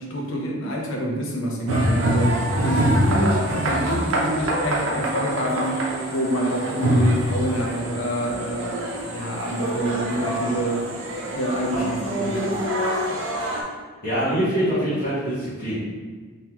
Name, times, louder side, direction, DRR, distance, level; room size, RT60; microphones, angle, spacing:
voice 1, 0.0-5.8 6.1-10.9 11.2-12.6, equal, 75° left, -1 dB, 0.7 m, -27 dB
sound 1, 1.7-13.6, right 1 dB, 80° right, 0.7 m, -25 dB
voice 2, 14.0-15.7, equal, 45° left, -13 dB, 1.2 m, -24 dB
3.7 x 3.2 x 2.9 m, 1.5 s
head